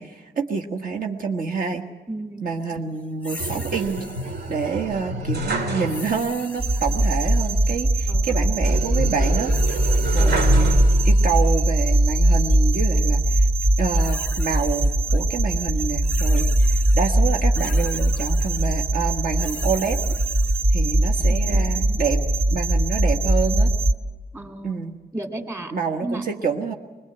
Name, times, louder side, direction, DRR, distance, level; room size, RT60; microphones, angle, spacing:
voice 1, 0.0-1.8 2.4-4.0 4.5-9.5 10.1-10.8 11.0-13.5 13.8-20.0 20.7-22.2 22.5-23.7 24.6-25.0 25.7-26.7, right 5 dB, 55° right, 2 dB, 1.5 m, -27 dB
voice 2, 2.1-2.5 8.1-8.5 10.2-10.4 21.3-22.0 24.3-24.8 25.1-25.7 26.0-26.3, right 1 dB, 15° right, 3 dB, 2.5 m, -34 dB
sound 1, 3.2-4.8 5.9-7.7 9.2-11.6 12.3-12.6 13.6-15.2 15.5-20.6, left 2 dB, 10° left, 0.8 m, -41 dB
sound 2, 3.4-6.4 6.7-6.8 8.6-11.4 11.9-12.7, right 2 dB, 75° right, 3.0 m, -29 dB
sound 3, 6.6-23.9, right 1 dB, 30° right, 0.9 m, -20 dB
25.5 x 21.0 x 8.0 m, 1.3 s
wide cardioid pair, 180°, 17 cm